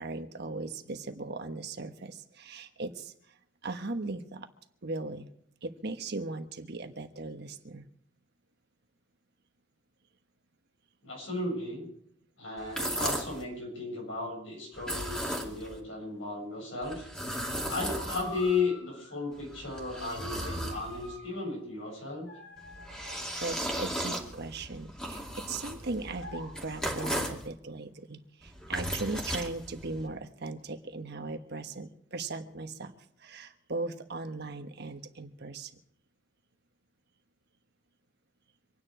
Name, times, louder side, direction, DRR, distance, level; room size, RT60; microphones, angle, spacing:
voice 1, 0.0-3.1 3.6-4.5 4.8-5.3 5.6-7.8 23.4-35.7, right 3 dB, 60° right, 7 dB, 1.4 m, -38 dB
voice 2, 11.0-11.9 12.4-17.1 17.7-22.3, left 3 dB, 90° left, 0 dB, 7.3 m, -35 dB
sound 1, 12.6-13.4 14.7-15.8 16.8-18.6 19.3-21.2 22.6-27.5 28.4-30.1, equal, 5° left, 2.4 m, -36 dB
sound 2, 15.7-16.5 17.4-19.1 20.0-21.4 22.2-23.8 26.1-27.4, equal, 65° left, 6.7 m, -46 dB
25.5 x 9.8 x 5.0 m, 0.68 s
head